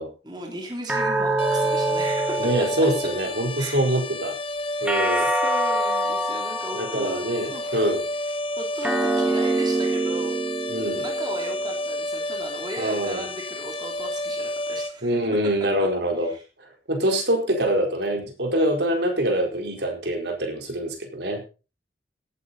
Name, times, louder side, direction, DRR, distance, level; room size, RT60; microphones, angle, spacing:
voice 1, 0.2-2.5 2.8-2.9 3.6-3.8 4.8-7.2 7.5-7.8 8.6-10.4 10.9-15.1 16.2-16.4, right 2 dB, 25° right, 1 dB, 3.2 m, -37 dB
sound 1, 0.9-3.5 4.9-7.4 8.8-11.4, right 2 dB, 5° right, 2.1 m, -25 dB
sound 2, 1.4-14.9, left 1 dB, 30° left, 1.2 m, -31 dB
voice 2, 2.4-4.4 4.8-5.3 6.7-8.0 10.7-11.0 12.8-13.2 15.0-16.3 16.6-21.4, right 1 dB, 70° right, 3 dB, 4.5 m, -24 dB
17.5 x 9.8 x 4.2 m, 0.33 s
head